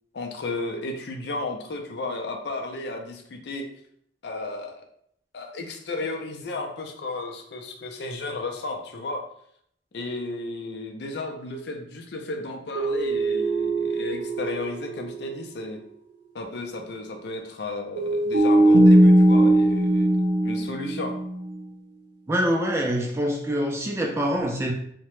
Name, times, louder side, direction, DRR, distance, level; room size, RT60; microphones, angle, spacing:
voice 1, 0.1-3.7 4.2-4.9 5.3-9.3 9.9-15.8 16.3-20.1 20.4-21.2, left 2 dB, 65° left, 3 dB, 0.5 m, -33 dB
sound 1, 12.8-15.3 15.6-15.7 18.0-21.6, right 1 dB, 70° right, 0.6 m, -20 dB
voice 2, 22.3-24.7, equal, 15° right, 0 dB, 0.3 m, -25 dB
2.8 x 2.1 x 3.1 m, 0.68 s
head